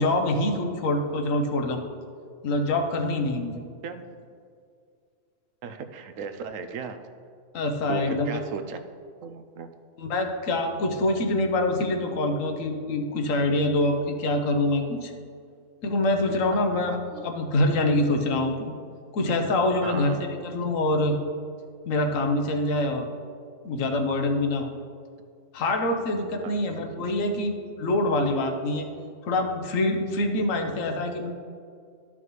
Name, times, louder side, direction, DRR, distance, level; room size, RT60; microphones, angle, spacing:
voice 1, 0.0-1.8 2.4-3.6 7.5-8.4 10.0-15.1 15.8-18.7 19.1-21.2 21.9-23.1 23.6-24.7 25.5-28.9 29.2-31.3, left 2 dB, 85° left, 4 dB, 1.2 m, -25 dB
voice 2, 5.6-7.0 7.9-8.8 9.2-9.7 16.3-17.2 19.8-20.2 26.4-26.8, right 6 dB, 80° right, 9 dB, 1.0 m, -37 dB
12.5 x 5.7 x 3.1 m, 2.2 s
omnidirectional pair, 1.3 m